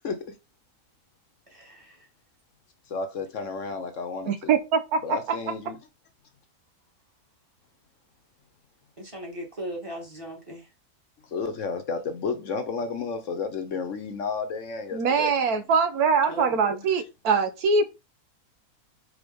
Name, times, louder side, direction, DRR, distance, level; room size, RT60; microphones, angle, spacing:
voice 1, 0.0-0.4 2.9-4.5 5.0-5.8 11.3-15.3, left 4 dB, 60° left, 1.1 m, -32 dB
voice 2, 1.5-1.9 9.0-10.6 16.3-16.8, right 1 dB, 20° right, 2.1 m, -37 dB
voice 3, 4.3-5.2 14.9-17.8, right 5 dB, 80° right, 1.4 m, -23 dB
4.8 x 4.6 x 5.2 m
omnidirectional pair, 1.6 m